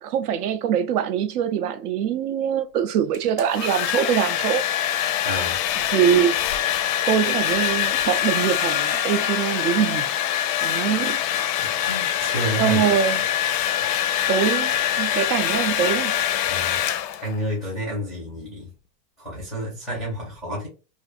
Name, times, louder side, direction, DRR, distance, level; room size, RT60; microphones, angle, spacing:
voice 1, 0.0-4.6 5.8-6.4 7.1-10.1 10.6-11.2 12.6-13.3 14.3-16.1, right 9 dB, 65° right, 0.5 m, -23 dB
Domestic sounds home sounds, 3.1-17.4, left 10 dB, 85° left, 0.5 m, -24 dB
voice 2, 5.2-5.6 11.9-12.8 16.5-16.8 17.2-18.7 19.2-20.7, equal, ahead, 0.5 m, -30 dB
2.5 x 2.5 x 2.4 m
supercardioid pair, 170°, 50 cm